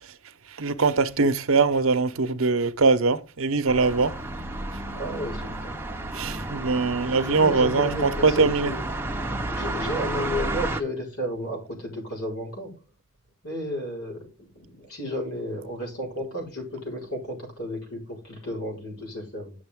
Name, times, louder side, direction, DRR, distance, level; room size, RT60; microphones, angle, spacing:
voice 1, 0.6-4.1 6.1-8.7, right 4 dB, 65° right, 0.9 m, -22 dB
sound 1, 3.7-10.8, right 2 dB, 10° right, 0.8 m, -31 dB
voice 2, 4.9-5.7 7.1-8.8 9.5-12.7 13.4-19.5, equal, 90° left, 4.7 m, -33 dB
10.0 x 6.6 x 3.6 m
head